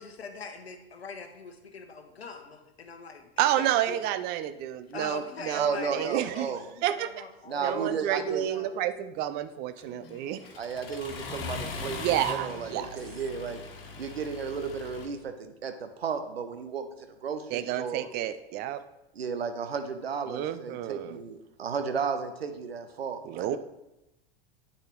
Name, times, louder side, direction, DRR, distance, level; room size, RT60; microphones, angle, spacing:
voice 1, 0.0-3.3 3.6-4.0 4.9-8.8, left 4 dB, 80° left, 7 dB, 0.9 m, -42 dB
voice 2, 3.4-6.5 6.8-7.3 7.6-10.4 12.0-12.9 17.5-18.8 20.3-21.2 23.3-23.6, right 12 dB, 30° right, 13 dB, 0.4 m, -30 dB
voice 3, 5.5-6.6 7.5-8.5 10.6-13.6 14.0-18.1 19.1-23.6, right 6 dB, 75° right, 8 dB, 0.8 m, -34 dB
Accelerating revving vroom, 9.8-15.1, left 4 dB, 65° left, 1.5 m, -40 dB
9.1 x 6.5 x 3.1 m, 0.92 s
figure-of-eight pair, 85°, 31 cm